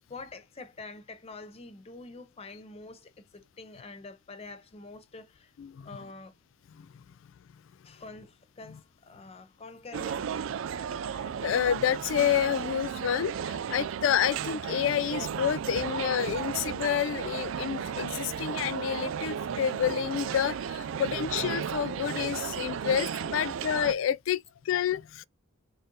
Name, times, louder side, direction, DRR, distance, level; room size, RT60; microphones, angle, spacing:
voice 1, 0.1-5.5 5.8-6.3 7.8-10.3 23.3-23.6, left 3 dB, 30° left, 0.6 m, -46 dB
voice 2, 5.6-5.9 6.8-6.9 11.4-25.2, left 9 dB, 70° left, 0.3 m, -29 dB
sound 1, 9.9-23.9, right 8 dB, 70° right, 0.3 m, -34 dB
4.1 x 2.5 x 3.7 m
head